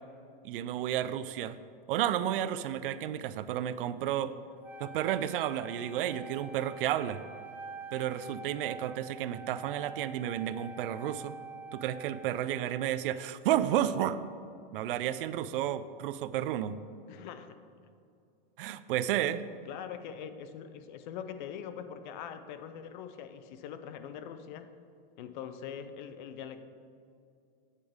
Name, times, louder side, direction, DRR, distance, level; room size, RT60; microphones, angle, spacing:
voice 1, 0.4-1.6 1.9-4.3 4.8-7.2 7.9-11.4 11.7-14.2 14.7-16.8 18.6-19.4, right 11 dB, 65° right, 14 dB, 0.5 m, -32 dB
Wind instrument woodwind instrument, 4.6-12.9, right 2 dB, 5° right, 0.5 m, -46 dB
voice 2, 17.1-17.6 19.7-24.7 25.2-26.6, left 8 dB, 55° left, 10 dB, 0.7 m, -43 dB
8.6 x 8.3 x 3.6 m, 2.5 s
supercardioid pair, 150°, 29 cm